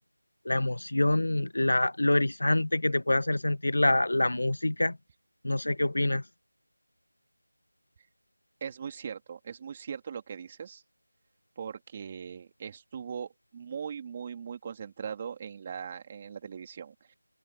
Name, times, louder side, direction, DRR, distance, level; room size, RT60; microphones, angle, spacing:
voice 1, 0.4-5.0 5.4-6.2, left 1 dB, 75° left, 1.3 m, -26 dB
voice 2, 8.6-10.8 11.6-17.1, right 7 dB, 20° right, 2.9 m, -40 dB
figure-of-eight pair, 175°, 0 cm